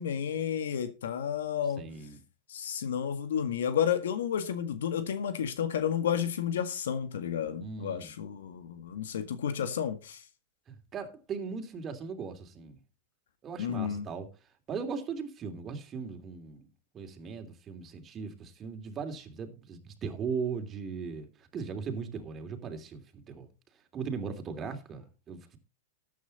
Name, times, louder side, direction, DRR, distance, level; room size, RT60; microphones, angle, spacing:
voice 1, 0.0-1.8 2.5-10.2 13.6-14.1, left 8 dB, 75° left, 1.8 m, -31 dB
voice 2, 1.8-2.2 7.6-8.1 10.7-12.8 13.4-14.3 14.7-16.7 16.9-23.5 23.9-25.6, right 5 dB, 30° right, 3.0 m, -38 dB
13.5 x 9.4 x 4.2 m
hypercardioid pair, 110°, 0 cm